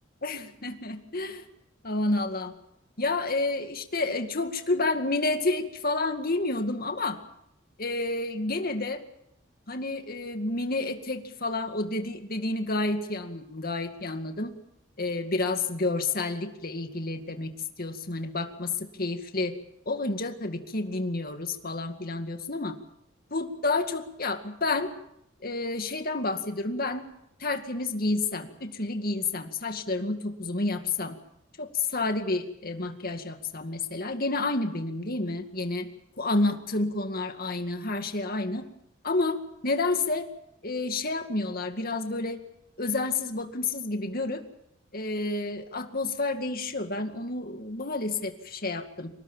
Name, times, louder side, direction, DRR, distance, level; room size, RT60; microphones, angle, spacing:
voice 1, 0.2-1.4 1.8-2.5 3.0-7.2 7.8-9.0 9.7-14.5 15.0-17.5 17.8-18.7 19.0-19.5 19.9-22.8 23.3-24.9 25.4-27.0 27.4-31.2 31.6-35.9 36.2-38.6 39.0-39.4 39.6-40.3 40.6-42.4 42.8-44.4 44.9-49.1, left 2 dB, 45° left, 6 dB, 2.2 m, -30 dB
25.0 x 20.0 x 7.4 m, 0.79 s
head